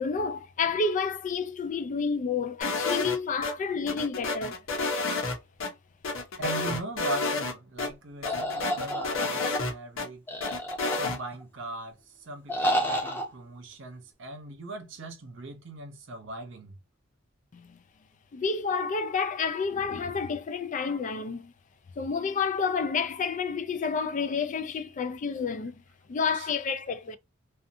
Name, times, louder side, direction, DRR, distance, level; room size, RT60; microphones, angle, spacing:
voice 1, 0.0-4.6 17.5-17.8 18.3-21.5 22.0-25.8 26.1-27.2, left 5 dB, 40° left, 0.3 m, -30 dB
sound 1, 2.6-3.5 3.9-5.7 6.0-7.5 7.8-7.9 8.2-10.1 10.4-11.2, left 3 dB, 90° left, 0.9 m, -30 dB
voice 2, 6.4-10.2 10.9-16.8 26.3-26.5, right 2 dB, 65° right, 0.7 m, -39 dB
sound 2, 8.3-9.6 10.3-11.4 12.5-13.3, equal, 10° left, 0.7 m, -30 dB
2.6 x 2.4 x 2.5 m
head